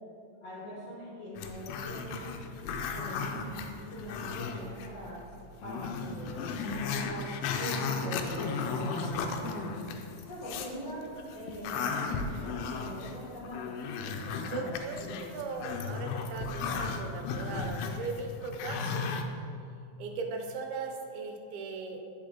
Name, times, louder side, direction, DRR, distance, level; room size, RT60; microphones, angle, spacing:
voice 1, 0.4-2.3 2.9-5.3 5.6-9.8 10.3-13.7 14.5-15.3 16.7-16.8, equal, 50° left, -8 dB, 2.5 m, -41 dB
Growling, 1.4-4.9 5.2-5.3 5.6-10.8 11.2-19.2, left 5 dB, 80° left, 2.2 m, -35 dB
voice 2, 14.2-15.0 15.3-19.2 20.0-22.0, right 4 dB, 90° right, 3 dB, 2.7 m, -38 dB
10.5 x 4.9 x 3.7 m, 2.6 s
omnidirectional pair, 4.3 m